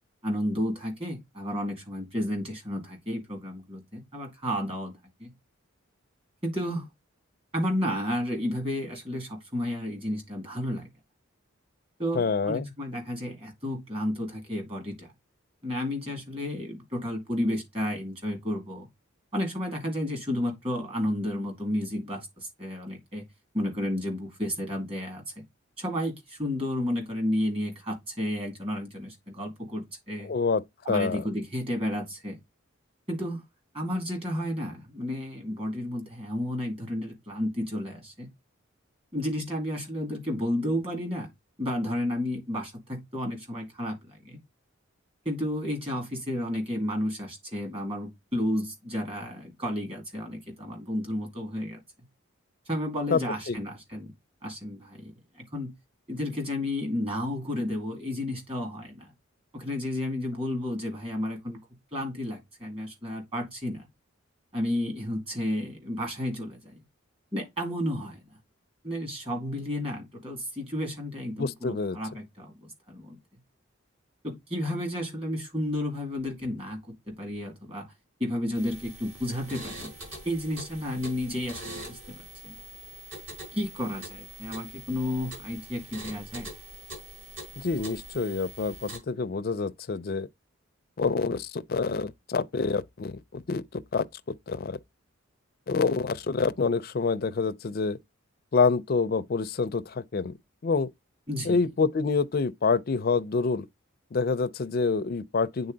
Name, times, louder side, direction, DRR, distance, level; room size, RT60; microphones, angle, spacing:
voice 1, 0.2-5.3 6.4-6.9 7.5-10.9 12.0-15.1 15.6-18.9 19.3-23.2 23.5-25.4 25.8-30.3 30.8-32.4 33.1-33.4 33.7-38.3 39.1-41.3 41.6-44.4 45.3-51.8 52.7-54.1 54.4-55.7 56.1-59.1 59.5-61.6 61.9-63.9 64.5-66.8 67.3-68.2 68.8-73.2 74.2-76.8 77.1-77.8 78.2-79.9 80.2-82.6 83.5-86.5 101.3-101.6, left 1 dB, 25° right, 2.3 m, -32 dB
voice 2, 12.1-12.7 30.2-30.6 30.9-31.2 53.1-53.6 71.4-72.0 87.6-90.3 91.0-94.1 94.5-94.8 95.7-98.0 98.5-100.4 100.6-100.9 101.4-103.7 104.1-105.7, left 4 dB, 45° left, 0.4 m, -27 dB
sound 1, 78.5-89.0, right 1 dB, 60° right, 5.8 m, -44 dB
8.5 x 4.0 x 3.9 m
head